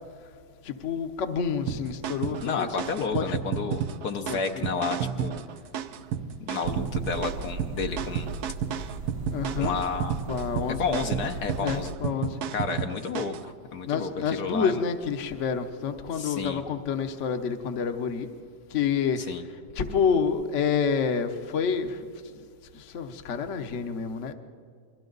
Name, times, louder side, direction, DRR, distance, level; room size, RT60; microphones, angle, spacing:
voice 1, 0.6-2.7 3.1-3.3 4.3-4.7 9.3-9.8 10.3-10.9 11.6-12.4 13.8-18.3 18.7-19.2 19.7-22.0 22.3-22.4 22.7-24.3, left 6 dB, 50° left, 7 dB, 1.2 m, -28 dB
sound 1, 1.7-13.5, right 8 dB, 70° right, 1.2 m, -32 dB
voice 2, 2.4-5.5 6.4-8.3 9.6-10.2 10.8-11.9 12.5-14.8 16.1-16.6 19.2-19.4, left 5 dB, 65° left, 5 dB, 1.4 m, -31 dB
sound 2, 6.6-11.9, right 3 dB, 85° right, 1.7 m, -38 dB
29.5 x 22.5 x 4.0 m, 2.3 s
omnidirectional pair, 1.8 m